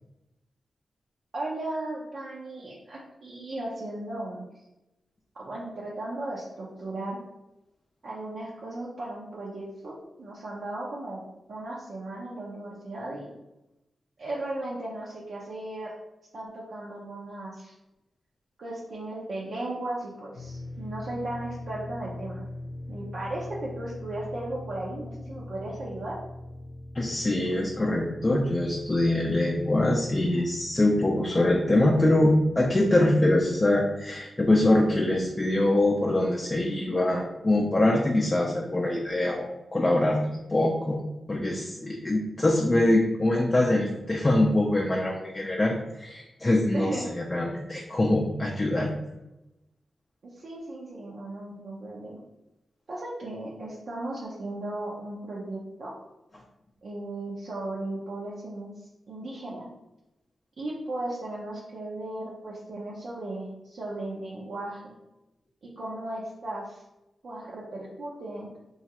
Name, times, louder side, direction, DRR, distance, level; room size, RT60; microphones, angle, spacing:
voice 1, 1.3-4.5 5.3-7.2 8.0-13.3 14.2-15.9 16.3-17.7 18.6-22.5 22.9-26.2 46.7-47.1 50.2-52.2 52.9-55.9 56.8-59.7 60.6-64.9 65.6-66.8 67.2-68.5, right 1 dB, 70° right, -6 dB, 0.5 m, -36 dB
sound 1, 20.3-33.1, left 1 dB, 85° left, 0.7 m, -42 dB
voice 2, 26.9-48.9, left 1 dB, 30° left, -1 dB, 0.4 m, -24 dB
3.0 x 2.3 x 2.9 m, 0.95 s
cardioid pair, 65°, 0 cm